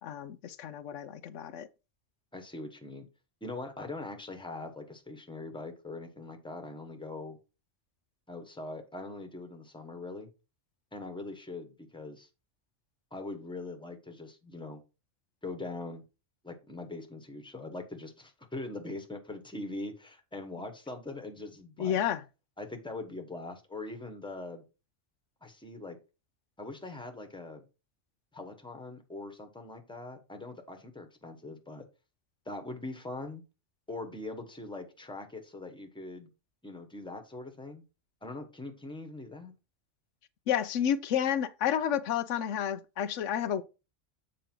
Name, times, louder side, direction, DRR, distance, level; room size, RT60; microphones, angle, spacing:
voice 1, 0.0-1.7 21.8-22.2 40.5-43.6, left 9 dB, 90° left, 1.0 m, -30 dB
voice 2, 2.3-3.1 3.4-7.4 8.3-10.3 10.9-12.3 13.1-14.8 15.4-16.0 16.4-22.0 22.6-24.6 25.4-26.0 26.6-27.6 28.3-31.8 32.4-33.4 33.9-36.3 36.6-37.8 38.2-39.5, left 2 dB, 5° left, 1.1 m, -42 dB
7.6 x 5.0 x 4.5 m
omnidirectional pair, 1.2 m